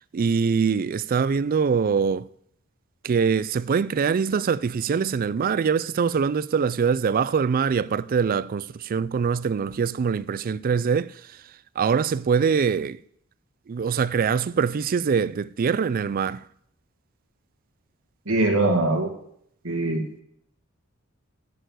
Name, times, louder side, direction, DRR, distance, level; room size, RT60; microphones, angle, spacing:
voice 1, 0.1-2.3 3.0-11.1 11.8-13.0 13.7-16.4, right 6 dB, 40° right, 0.3 m, -23 dB
voice 2, 18.3-19.1 19.6-20.0, right 2 dB, 85° right, 2.2 m, -22 dB
11.5 x 6.8 x 7.8 m
head